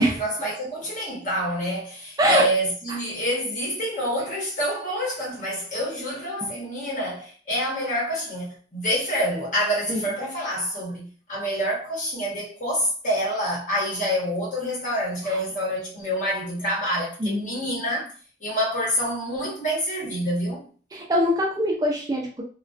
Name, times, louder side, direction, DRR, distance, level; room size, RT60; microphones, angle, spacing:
voice 1, 0.0-18.1 18.4-20.6, equal, 45° left, 1.0 m, -27 dB
voice 2, 17.2-17.5 20.9-22.4, equal, 20° right, 0.3 m, -22 dB
2.3 x 2.2 x 2.4 m
head